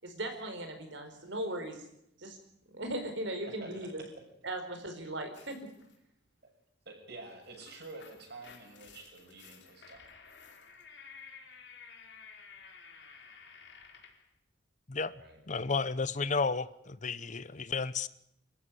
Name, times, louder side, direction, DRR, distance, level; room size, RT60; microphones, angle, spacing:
voice 1, 0.0-1.8 2.2-2.4 2.7-4.0 4.4-5.6, right 1 dB, 75° right, 6 dB, 4.6 m, -38 dB
voice 2, 3.6-3.9 6.4-6.5 6.9-10.1 15.1-15.4, right 2 dB, 60° right, 3 dB, 7.2 m, -49 dB
sound 1, 5.3-6.0 7.3-14.3, left 5 dB, 65° left, 3.7 m, -53 dB
voice 3, 15.5-18.1, left 4 dB, 40° left, 16 dB, 0.8 m, -32 dB
26.5 x 14.5 x 9.8 m, 0.78 s
head